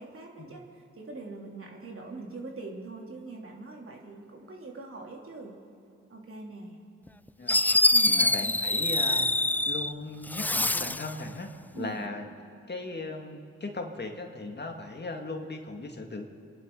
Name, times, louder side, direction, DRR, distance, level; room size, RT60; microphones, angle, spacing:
voice 1, 0.0-5.6 6.1-6.8 7.9-8.2 11.7-12.0, right 3 dB, 45° right, -1 dB, 3.1 m, -42 dB
Fireworks, 7.1-7.2 7.5-9.9 10.3-11.1, left 1 dB, 5° left, 0.3 m, -24 dB
voice 2, 8.1-9.3 9.7-12.3 12.7-16.3, left 2 dB, 35° left, 3 dB, 2.0 m, -38 dB
29.0 x 11.0 x 4.0 m, 2.5 s
supercardioid pair, 50°, 30 cm